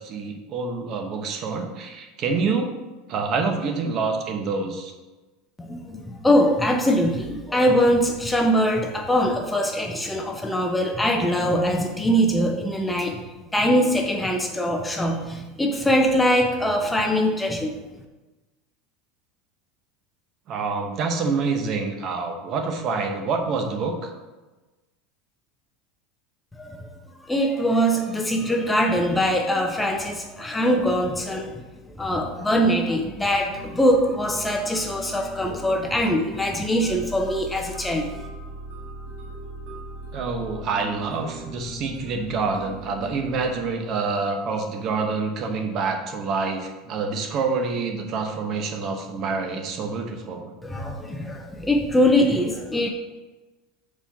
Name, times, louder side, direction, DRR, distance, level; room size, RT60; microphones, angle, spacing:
voice 1, 0.0-2.7 3.1-4.9 20.5-24.1 40.1-50.5, right 4 dB, 40° right, 4 dB, 0.8 m, -27 dB
voice 2, 5.6-13.2 13.5-17.7 26.6-26.9 27.2-31.6 32.0-38.1 50.6-52.9, equal, 5° left, 2 dB, 0.5 m, -22 dB
sound 1, 33.5-43.5, right 2 dB, 60° right, 1.7 m, -39 dB
4.6 x 4.4 x 5.6 m, 1.1 s
supercardioid pair, 150°, 0 cm